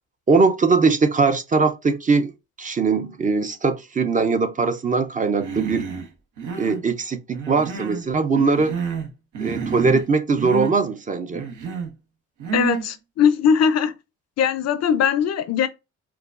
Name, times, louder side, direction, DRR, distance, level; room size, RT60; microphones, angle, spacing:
voice 1, 0.3-2.3 2.6-5.9 6.5-8.7 9.4-11.5, right 4 dB, 25° right, 0.4 m, -21 dB
Human voice, 5.4-6.1 6.4-6.8 7.3-8.1 8.3-9.1 9.3-10.1 10.4-10.7 11.3-11.9 12.4-12.9, right 6 dB, 90° right, 1.0 m, -29 dB
voice 2, 12.5-14.0 14.4-15.7, left 7 dB, 60° left, 0.5 m, -20 dB
4.7 x 2.3 x 2.5 m
cardioid pair, 90°, 30 cm